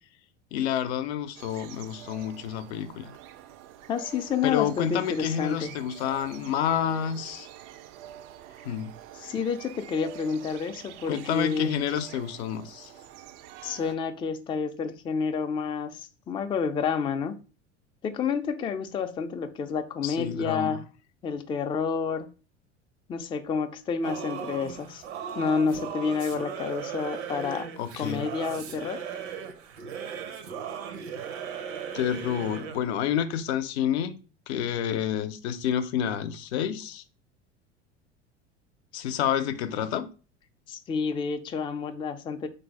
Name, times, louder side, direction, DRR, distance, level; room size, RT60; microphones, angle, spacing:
voice 1, 0.5-3.1 4.4-7.5 8.6-8.9 11.1-12.9 20.0-20.8 27.8-28.2 31.9-34.1 34.5-37.0 38.9-40.1, left 9 dB, 65° left, 0.6 m, -29 dB
sound 1, 1.3-14.0, right 11 dB, 45° right, 0.4 m, -47 dB
voice 2, 3.9-5.8 9.2-11.7 13.6-16.0 16.3-17.4 18.0-20.9 21.2-22.3 23.1-25.0 25.4-27.7 28.0-29.0 40.7-42.5, left 5 dB, 15° left, 0.4 m, -29 dB
Singing / Musical instrument, 24.0-32.9, right 7 dB, 65° right, 0.8 m, -37 dB
3.9 x 2.7 x 4.6 m
figure-of-eight pair, 75°, 35 cm